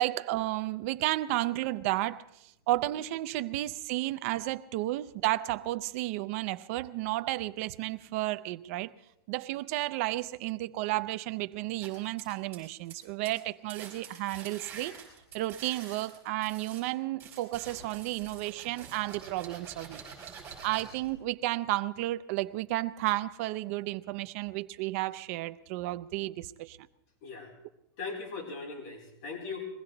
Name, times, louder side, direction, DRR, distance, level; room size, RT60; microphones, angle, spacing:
voice 1, 0.0-2.3 2.7-8.9 9.3-15.0 15.3-20.0 20.6-26.8, right 17 dB, 35° right, 0.5 m, -32 dB
sound 1, 11.8-13.0 13.2-13.4 13.7-16.8 17.2-21.1, right 6 dB, 15° right, 4.7 m, -47 dB
voice 2, 27.2-27.5 28.0-29.7, left 4 dB, 40° left, 4.2 m, -39 dB
22.0 x 15.5 x 3.9 m
supercardioid pair, 175°, 13 cm